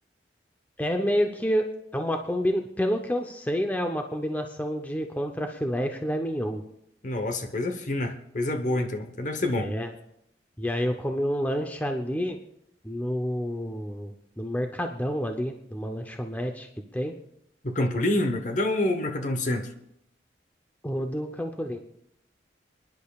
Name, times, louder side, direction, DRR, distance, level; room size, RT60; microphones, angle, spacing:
voice 1, 0.8-1.7 1.9-6.6 9.6-9.9 10.6-12.4 12.8-17.1 20.8-21.8, equal, 10° left, 4 dB, 0.7 m, -29 dB
voice 2, 7.0-9.7 17.6-19.7, left 1 dB, 45° left, 7 dB, 1.0 m, -27 dB
29.0 x 10.5 x 2.4 m, 0.76 s
head